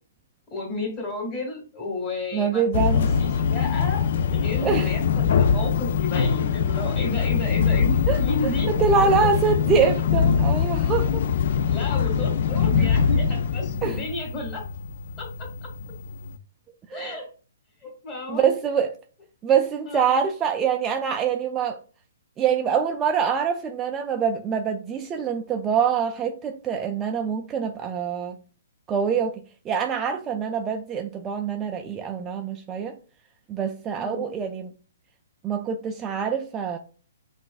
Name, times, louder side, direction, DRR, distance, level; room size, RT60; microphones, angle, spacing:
voice 1, 0.5-2.8 3.2-8.7 11.7-14.7 15.2-15.5 16.9-17.3 17.8-18.5 19.9-20.2 33.9-34.3, left 2 dB, 25° left, 1.9 m, -32 dB
voice 2, 2.3-3.1 4.6-4.9 8.1-11.2 13.8-14.0 16.9-17.2 18.3-18.9 19.4-21.8 22.4-28.4 28.9-33.0 33.5-34.7 35.4-36.8, right 6 dB, 20° right, 0.4 m, -25 dB
sound 1, 2.7-16.4, left 6 dB, 55° left, 0.3 m, -23 dB
5.6 x 2.5 x 2.4 m
hypercardioid pair, 135°, 0 cm